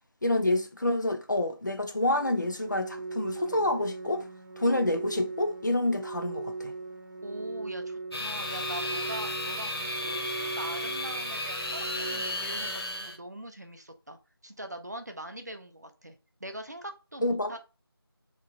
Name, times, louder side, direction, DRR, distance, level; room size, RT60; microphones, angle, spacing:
voice 1, 0.2-4.3 4.6-6.7 17.2-17.6, left 1 dB, 50° left, 0.5 m, -28 dB
Organ, 2.2-13.2, right 3 dB, 65° right, 0.8 m, -39 dB
voice 2, 7.2-14.2 14.4-17.6, right 1 dB, 45° right, 0.4 m, -42 dB
sound 1, 8.1-13.2, left 1 dB, 75° left, 0.8 m, -34 dB
2.9 x 2.2 x 2.5 m
figure-of-eight pair, 170°, 13 cm